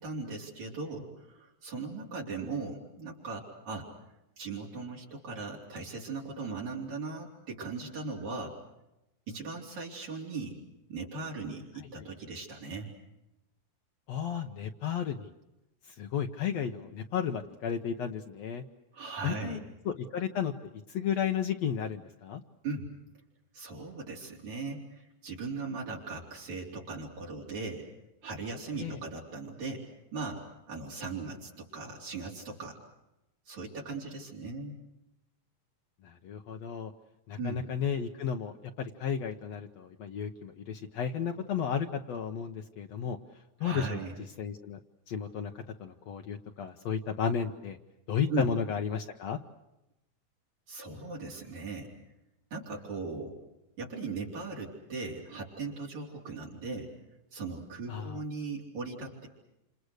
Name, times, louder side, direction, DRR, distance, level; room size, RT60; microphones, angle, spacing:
voice 1, 0.0-3.9 4.4-8.6 9.3-10.6 10.9-12.9 18.9-19.6 22.6-22.9 23.5-27.9 28.2-29.8 30.1-32.8 33.5-34.7 37.4-37.6 43.6-44.1 48.3-48.5 50.7-51.9 52.5-53.4 53.8-56.9 57.3-59.3, right 3 dB, 65° right, -3 dB, 5.4 m, -38 dB
voice 2, 14.1-15.3 16.0-18.6 19.2-19.6 19.9-20.5 20.9-22.4 28.8-29.0 36.0-36.9 37.3-43.2 43.6-44.0 44.4-44.8 45.1-45.5 45.8-47.8 48.1-49.4 57.9-58.2, left 7 dB, 65° left, 4 dB, 2.1 m, -33 dB
29.0 x 27.5 x 6.6 m, 0.91 s
omnidirectional pair, 3.6 m